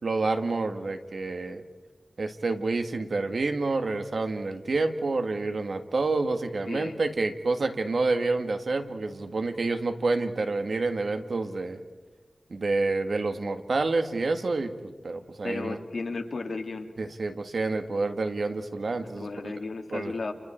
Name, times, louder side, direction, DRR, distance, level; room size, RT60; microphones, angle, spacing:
voice 1, 0.0-1.6 2.2-11.8 12.5-15.8 17.0-19.5 19.9-20.1, right 3 dB, 75° right, 6 dB, 1.8 m, -28 dB
voice 2, 6.7-7.0 15.4-16.9 19.0-20.3, left 3 dB, 75° left, 4 dB, 2.3 m, -34 dB
30.0 x 30.0 x 4.5 m, 1.2 s
wide cardioid pair, 90°, 0 cm